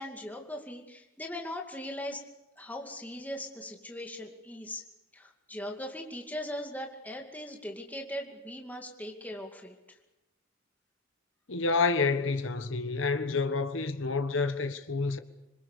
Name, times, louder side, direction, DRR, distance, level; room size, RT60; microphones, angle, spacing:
voice 1, 0.0-2.2 2.6-4.8 5.1-9.8, left 1 dB, 10° left, 2.4 m, -39 dB
voice 2, 11.5-15.2, left 4 dB, 75° left, 1.4 m, -28 dB
26.5 x 22.0 x 6.8 m
head